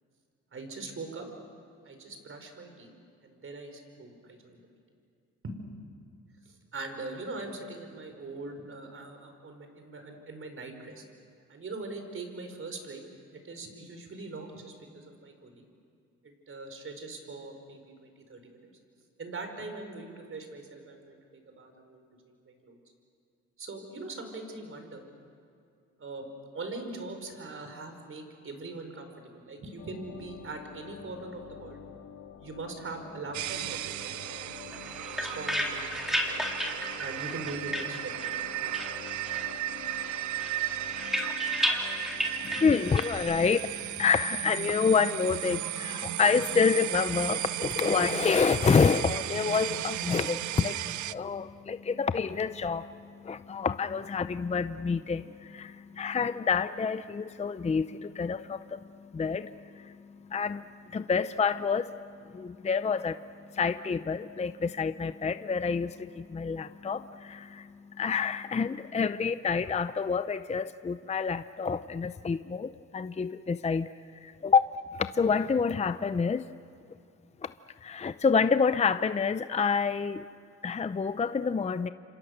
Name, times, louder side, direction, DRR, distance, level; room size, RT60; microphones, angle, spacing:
voice 1, 0.5-1.3 1.8-2.9 3.2-4.8 5.4-5.5 6.4-11.0 11.5-13.0 13.3-15.6 16.2-18.7 19.2-22.8 23.6-25.0 26.0-26.3 26.5-31.8 32.4-34.4 34.8-36.4 37.0-38.7, right 3 dB, 45° right, 5 dB, 5.0 m, -42 dB
sound 1, 29.8-43.6, left 8 dB, 75° left, 2.0 m, -47 dB
sound 2, 33.3-51.1, right 14 dB, 75° right, 0.6 m, -35 dB
sound 3, 34.7-38.5 38.7-39.6 39.9-43.1, equal, ahead, 3.7 m, -33 dB
voice 2, 42.4-73.9 74.2-74.7 74.9-76.5 77.4-77.5 77.8-80.2 80.6-81.9, left 5 dB, 20° left, 12 dB, 0.6 m, -28 dB
29.5 x 26.5 x 6.7 m, 2.4 s
cardioid pair, 90°, 30 cm